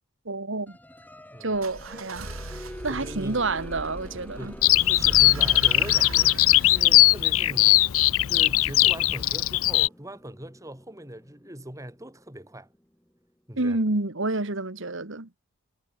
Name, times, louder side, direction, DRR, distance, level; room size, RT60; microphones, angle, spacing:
voice 1, 0.3-0.8 1.4-4.5 13.6-15.3, right 2 dB, 60° right, 1.8 m, -29 dB
sound 1, 0.7-13.2, equal, 10° left, 4.6 m, -47 dB
sound 2, 1.5-8.4, right 2 dB, 85° right, 6.8 m, -39 dB
voice 2, 2.9-3.4 4.4-7.8 8.3-12.7 13.5-13.8, right 1 dB, 15° right, 3.3 m, -41 dB
Bird vocalization bird call bird song, 4.6-9.9, left 17 dB, 80° left, 0.6 m, -20 dB
head